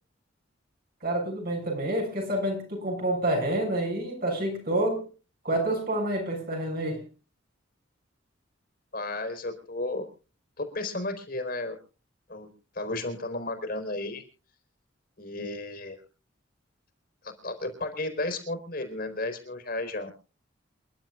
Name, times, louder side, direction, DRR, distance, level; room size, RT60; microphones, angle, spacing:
voice 1, 1.0-5.1 5.4-7.0, right 1 dB, 50° right, 1 dB, 6.9 m, -28 dB
voice 2, 8.9-10.1 10.6-11.8 12.3-14.2 15.2-16.0 17.2-20.1, left 2 dB, 45° left, 7 dB, 4.3 m, -33 dB
29.0 x 11.5 x 2.5 m, 0.36 s
head